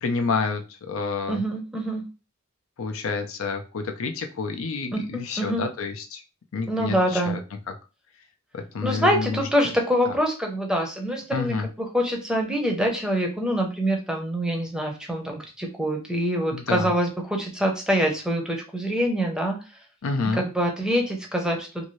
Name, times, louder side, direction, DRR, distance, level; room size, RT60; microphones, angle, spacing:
voice 1, 0.0-1.4 2.8-6.2 6.5-7.4 7.7-7.8 8.5-9.4 10.0-10.1 11.3-11.7 16.5-16.9 20.0-20.4, left 4 dB, 75° left, 5 dB, 0.5 m, -29 dB
voice 2, 1.3-2.0 4.9-5.6 6.7-7.4 8.8-19.6 20.4-21.8, equal, 5° right, 2 dB, 0.6 m, -25 dB
2.7 x 2.6 x 3.1 m, 0.31 s
head